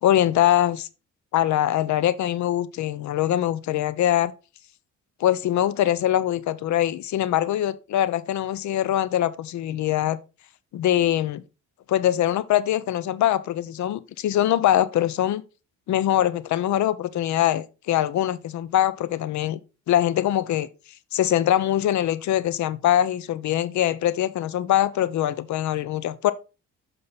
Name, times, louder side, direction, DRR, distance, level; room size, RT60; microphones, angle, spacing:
voice 1, 0.0-0.9 1.3-4.3 5.2-10.2 10.7-11.4 11.9-15.4 15.9-19.6 19.9-20.7 21.1-26.3, left 12 dB, 70° left, 0.7 m, -23 dB
7.0 x 5.5 x 4.0 m
cardioid pair, 90°, 30 cm